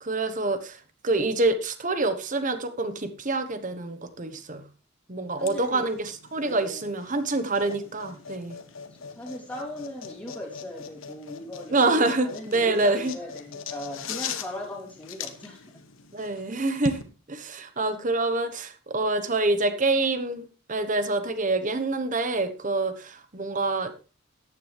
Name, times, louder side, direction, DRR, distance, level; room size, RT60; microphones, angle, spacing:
voice 1, 0.0-0.8 1.0-4.6 5.1-8.6 11.7-13.1 16.1-17.0 17.3-23.9, right 2 dB, 40° right, 10 dB, 1.1 m, -26 dB
voice 2, 5.3-5.9 6.4-6.9 8.9-15.8, left 1 dB, 5° left, -4 dB, 3.2 m, -38 dB
sound 1, 5.4-17.0, left 5 dB, 85° left, 1.3 m, -40 dB
14.0 x 9.5 x 3.3 m, 0.34 s
head